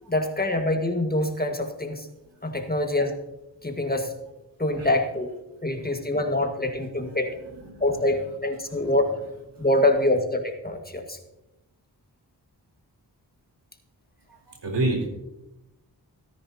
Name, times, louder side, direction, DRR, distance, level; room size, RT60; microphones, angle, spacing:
voice 1, 0.1-2.1 2.4-3.2 3.6-4.1 4.6-5.3 5.6-7.3 7.8-9.1 9.6-11.2, left 1 dB, 20° left, 4 dB, 1.7 m, -25 dB
voice 2, 5.6-6.2 7.0-7.2 7.5-8.1 8.6-8.9 9.6-9.7 14.3-15.1, right 2 dB, 70° right, 1 dB, 3.8 m, -31 dB
17.5 x 10.0 x 2.8 m, 0.91 s
cardioid pair, 50°, 43 cm